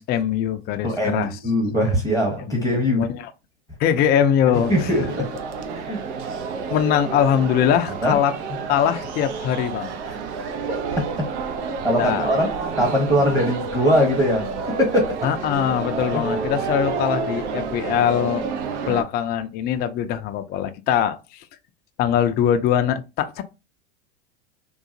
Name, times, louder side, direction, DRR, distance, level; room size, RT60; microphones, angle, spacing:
voice 1, 0.0-1.3 2.5-2.6 3.0-3.2 3.8-4.7 6.7-8.3 8.7-10.0 12.0-12.3 15.2-18.5 18.9-21.5 22.0-23.4, left 9 dB, 30° left, 0.4 m, -22 dB
voice 2, 0.8-3.1 4.5-5.3 5.7-6.0 8.0-8.2 11.8-12.5 12.8-15.2 16.1-16.2, equal, 10° right, 1.0 m, -21 dB
sound 1, 4.5-19.0, right 5 dB, 70° right, 0.8 m, -29 dB
3.8 x 2.4 x 2.6 m
hypercardioid pair, 100°, 35 cm